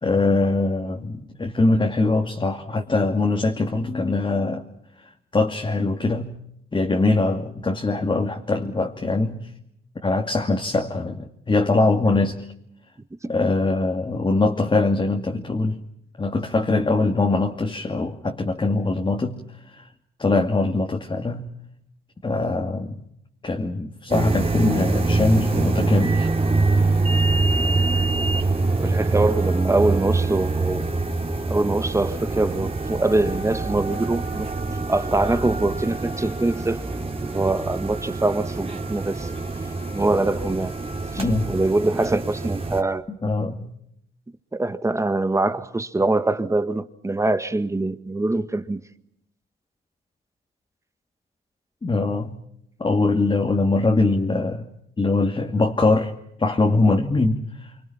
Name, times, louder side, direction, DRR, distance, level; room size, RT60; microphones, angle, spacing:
voice 1, 0.0-4.7 5.3-6.4 6.7-9.5 10.0-12.5 13.3-15.8 16.2-19.4 19.7-19.9 20.2-21.5 22.2-23.0 23.4-26.3 41.2-41.5 43.1-43.7 51.8-52.4 52.8-54.6 55.0-56.1 56.4-57.7, left 3 dB, 25° left, 2.4 m, -22 dB
sound 1, 24.1-42.8, right 3 dB, 30° right, 3.2 m, -24 dB
voice 2, 28.8-30.9 31.5-34.5 34.9-36.8 37.2-39.3 39.9-40.8 41.1-43.0 44.5-48.8, right 2 dB, 15° right, 1.7 m, -23 dB
27.5 x 25.5 x 5.9 m
cardioid pair, 90°, 20 cm